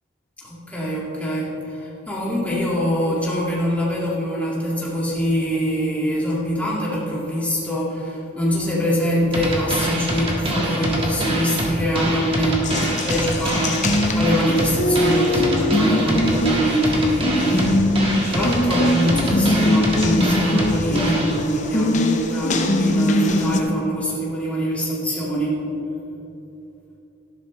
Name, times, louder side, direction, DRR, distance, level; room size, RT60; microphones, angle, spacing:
voice 1, 0.4-18.0 18.3-25.6, equal, 5° left, -6 dB, 2.1 m, -23 dB
sound 1, 9.3-21.3, right 1 dB, 25° right, 1.7 m, -24 dB
Water tap faucet, 12.6-23.6, left 1 dB, 35° left, 0.7 m, -22 dB
13.5 x 11.5 x 3.2 m, 2.9 s
head